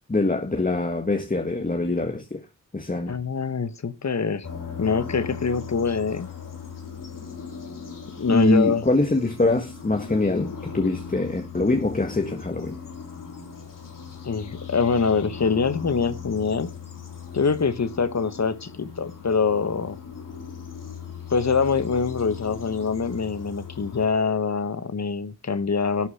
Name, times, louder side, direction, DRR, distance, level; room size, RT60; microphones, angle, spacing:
voice 1, 0.1-2.4 2.7-3.1 8.3-12.8, left 2 dB, 25° left, 1.7 m, -24 dB
voice 2, 3.1-4.5 4.8-6.3 8.2-8.8 14.2-16.7 17.3-20.0 21.3-26.1, left 5 dB, 60° left, 1.4 m, -24 dB
sound 1, 4.4-24.1, left 6 dB, 85° left, 3.7 m, -38 dB
12.0 x 4.7 x 8.5 m
cardioid pair, 45°, 32 cm